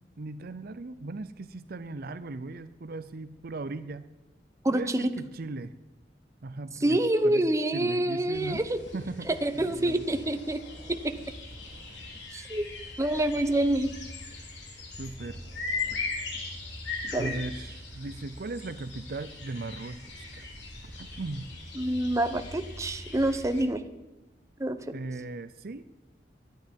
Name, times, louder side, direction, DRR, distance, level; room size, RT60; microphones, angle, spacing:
voice 1, 0.2-4.0 4.7-5.8 6.4-8.6 8.9-10.0 15.0-15.4 17.2-20.5 21.0-21.5 24.9-25.8, right 2 dB, 55° right, 13 dB, 0.6 m, -38 dB
voice 2, 4.6-5.1 6.8-8.8 9.3-10.6 12.3-12.7 13.0-13.9 17.1-17.3 21.8-23.8 24.6-24.8, right 1 dB, 15° right, 9 dB, 0.9 m, -26 dB
sound 1, 8.3-23.6, left 3 dB, 75° left, 3.6 m, -40 dB
23.5 x 9.7 x 5.3 m, 1.1 s
head